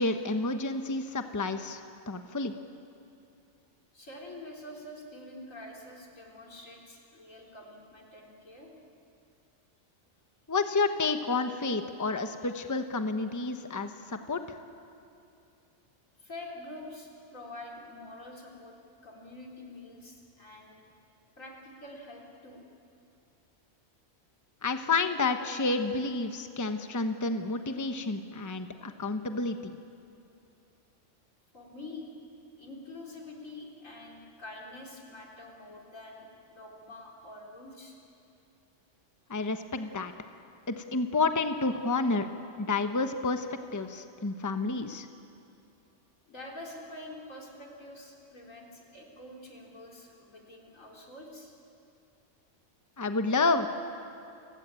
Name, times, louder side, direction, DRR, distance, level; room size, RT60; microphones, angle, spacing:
voice 1, 0.0-2.5 10.5-14.4 24.6-29.7 39.3-40.1 40.7-42.3 42.6-43.5 43.7-45.1 53.0-53.7, left 3 dB, 15° left, 7 dB, 1.0 m, -30 dB
voice 2, 3.9-8.7 16.2-18.8 19.0-20.8 21.4-22.7 31.5-32.1 32.6-38.0 46.3-51.5, left 2 dB, 90° left, -1 dB, 4.3 m, -46 dB
30.0 x 17.0 x 9.0 m, 2.6 s
omnidirectional pair, 1.3 m